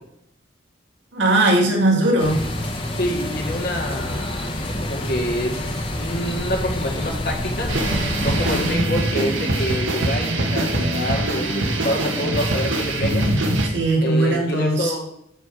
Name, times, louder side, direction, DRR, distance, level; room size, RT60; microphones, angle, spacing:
voice 1, 1.1-2.4 8.5-8.8 13.6-14.9, right 1 dB, 65° right, 1 dB, 2.2 m, -19 dB
sound 1, 2.2-8.8, left 1 dB, 25° left, 1.3 m, -28 dB
voice 2, 3.0-7.7 8.2-13.3 14.0-15.1, equal, 55° left, 0 dB, 1.9 m, -27 dB
sound 2, 7.7-13.7, right 1 dB, 80° right, 1.5 m, -23 dB
9.1 x 7.3 x 4.8 m, 0.76 s
head